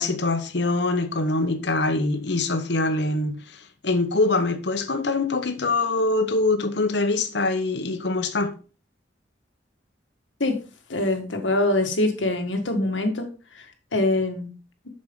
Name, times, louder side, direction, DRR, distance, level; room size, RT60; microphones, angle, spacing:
voice 1, 0.0-8.6, left 2 dB, 65° left, 1.0 m, -24 dB
voice 2, 10.9-13.3 13.9-14.5, left 2 dB, 85° left, 1.7 m, -23 dB
7.4 x 6.5 x 3.8 m
head